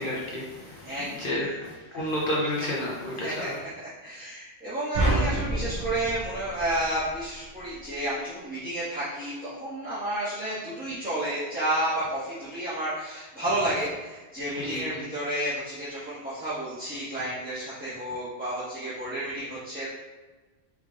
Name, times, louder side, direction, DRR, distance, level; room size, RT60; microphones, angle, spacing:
voice 1, 0.0-3.6 14.5-14.8, left 1 dB, 55° left, -4 dB, 0.8 m, -31 dB
voice 2, 0.8-1.5 1.9-2.0 3.2-3.7 4.0-19.9, right 1 dB, 10° right, -14 dB, 1.2 m, -31 dB
sound 1, 4.9-7.4, right 1 dB, 65° right, 1.8 m, -28 dB
4.7 x 3.3 x 2.4 m, 1.2 s
omnidirectional pair, 1.2 m